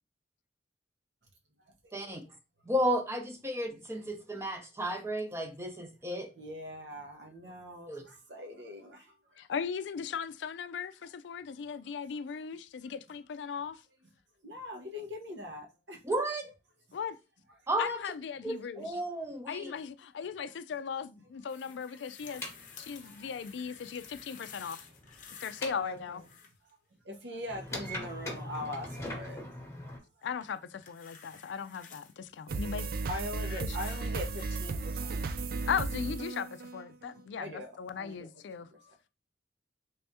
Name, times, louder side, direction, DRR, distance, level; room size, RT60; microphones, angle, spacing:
voice 1, 1.7-2.1 4.4-4.5 6.4-9.5 14.4-16.0 22.8-23.3 25.7-26.2 27.0-29.7 30.2-30.3 33.0-35.2 37.4-38.3 38.6-39.1, left 1 dB, 80° right, 1.0 m, -42 dB
voice 2, 2.6-6.3 7.9-8.0 16.0-16.5 17.7-18.0 18.4-19.7, equal, 15° right, 0.6 m, -33 dB
voice 3, 9.4-13.8 16.9-17.2 17.8-19.0 19.5-22.5 22.8-24.8 25.4-26.2 30.2-32.9 33.6-33.8 35.7-38.7, left 6 dB, 80° left, 0.4 m, -38 dB
sound 1, 21.5-25.7 26.0-26.7 30.4-32.1 32.9-34.7 35.6-35.7, left 7 dB, 45° left, 0.7 m, -51 dB
sound 2, 22.2-26.3 27.5-30.0, left 1 dB, 15° left, 1.0 m, -42 dB
sound 3, 32.5-37.2, right 3 dB, 55° right, 0.4 m, -35 dB
3.4 x 3.3 x 2.7 m
head